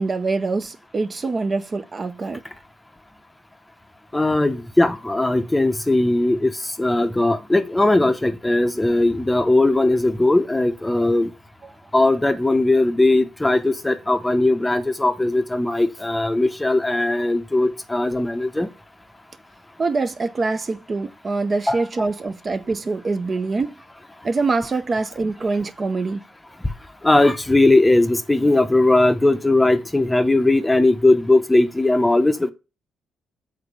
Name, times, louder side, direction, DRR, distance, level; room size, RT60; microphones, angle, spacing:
voice 1, 0.0-2.4 11.6-11.7 19.8-23.8 24.2-26.3, right 3 dB, 35° right, 0.5 m, -24 dB
voice 2, 4.1-11.3 11.9-18.7 21.7-21.8 27.0-32.5, left 2 dB, 10° left, 0.7 m, -18 dB
6.5 x 4.0 x 5.2 m
cardioid pair, 90°, 0 cm